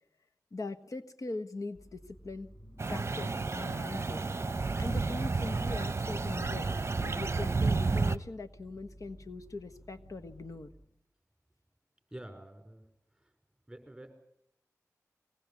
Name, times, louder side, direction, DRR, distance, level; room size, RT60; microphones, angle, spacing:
voice 1, 0.5-2.5 2.9-4.2 4.8-6.7 7.0-10.7, left 2 dB, 65° left, 7 dB, 1.3 m, -41 dB
sound 1, 1.7-10.9, equal, 30° left, 3.8 m, -53 dB
sound 2, 2.8-8.2, right 3 dB, 45° right, 0.8 m, -31 dB
voice 2, 12.1-12.8 13.1-13.3 13.7-14.1, right 1 dB, 10° right, 6 dB, 5.1 m, -48 dB
23.5 x 18.5 x 8.4 m, 0.74 s
wide cardioid pair, 60°, 6 cm